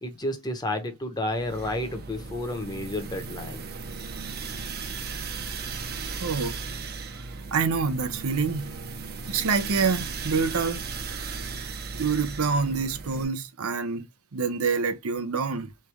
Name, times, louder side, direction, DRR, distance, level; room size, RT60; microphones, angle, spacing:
voice 1, 0.0-3.6, left 1 dB, 20° left, 0.9 m, -31 dB
sound 1, 1.3-13.2, right 4 dB, 45° right, 0.7 m, -36 dB
voice 2, 6.2-6.6 7.5-8.7 9.3-10.8 11.9-14.1 14.3-15.7, right 5 dB, 85° right, 0.7 m, -26 dB
3.5 x 3.3 x 3.4 m
head